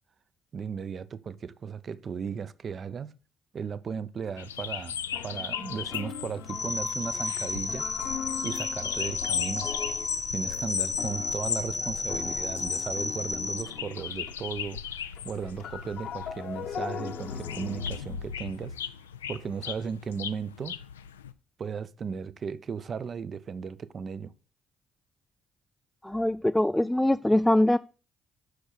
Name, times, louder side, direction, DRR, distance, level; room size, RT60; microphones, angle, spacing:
voice 1, 0.5-3.1 3.5-7.9 8.4-9.7 10.3-18.8 19.3-20.8 21.6-24.3, right 6 dB, 50° right, 0.7 m, -36 dB
sound 1, 4.2-4.3 5.1-14.6 14.9-18.8, left 7 dB, 65° left, 1.1 m, -40 dB
sound 2, 4.4-21.3, left 8 dB, 90° left, 0.4 m, -37 dB
sound 3, 6.5-13.6, left 3 dB, 35° left, 1.1 m, -33 dB
voice 2, 26.0-27.8, left 1 dB, 10° left, 0.4 m, -23 dB
8.2 x 6.3 x 6.6 m
hypercardioid pair, 45°, 0 cm